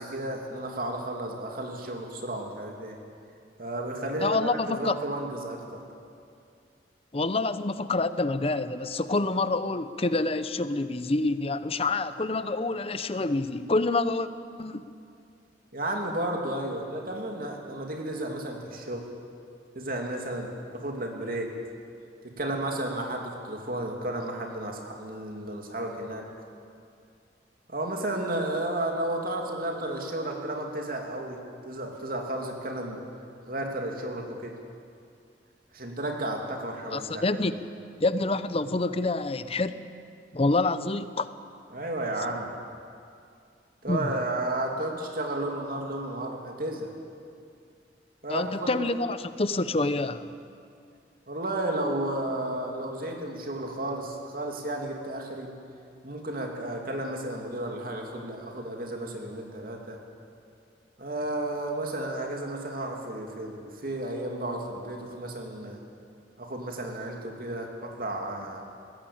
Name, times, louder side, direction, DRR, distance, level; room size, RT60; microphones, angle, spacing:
voice 1, 0.0-3.0 3.6-5.8 15.7-19.1 19.7-21.5 22.2-26.3 27.7-31.4 31.7-33.0 33.5-34.5 35.7-37.2 37.5-37.6 41.7-42.5 43.8-46.9 48.2-48.8 51.3-55.5 56.0-60.0 61.0-65.8 66.4-68.6, right 1 dB, 55° right, 1 dB, 2.9 m, -33 dB
voice 2, 4.2-5.0 7.1-14.3 14.6-14.8 36.9-37.6 38.0-39.9 40.3-41.3 43.9-44.1 48.3-50.3, left 2 dB, 35° left, 13 dB, 0.7 m, -27 dB
20.5 x 17.0 x 8.7 m, 2.4 s
head